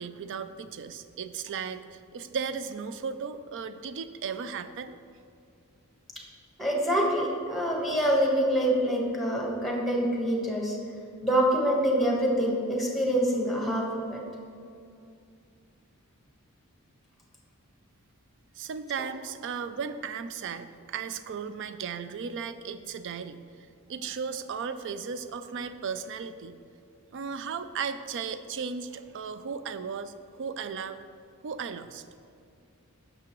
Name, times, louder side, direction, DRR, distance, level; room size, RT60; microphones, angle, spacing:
voice 1, 0.0-5.0 18.5-23.4 23.9-26.6 27.1-31.0 31.4-32.0, right 6 dB, 55° right, 12 dB, 0.4 m, -36 dB
voice 2, 6.6-10.8 11.2-14.2, equal, ahead, -1 dB, 1.2 m, -26 dB
9.6 x 6.6 x 3.0 m, 2.4 s
head